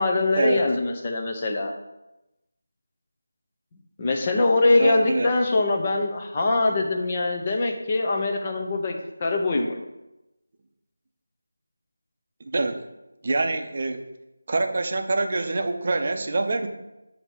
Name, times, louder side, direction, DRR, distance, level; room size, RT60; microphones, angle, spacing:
voice 1, 0.0-1.7 4.0-9.8, left 2 dB, 25° left, 2 dB, 0.8 m, -23 dB
voice 2, 4.8-5.3 12.5-12.8 13.2-14.0 14.5-16.7, right 2 dB, 40° right, 5 dB, 0.7 m, -25 dB
8.6 x 2.9 x 6.3 m, 0.96 s
figure-of-eight pair, 175°, 0 cm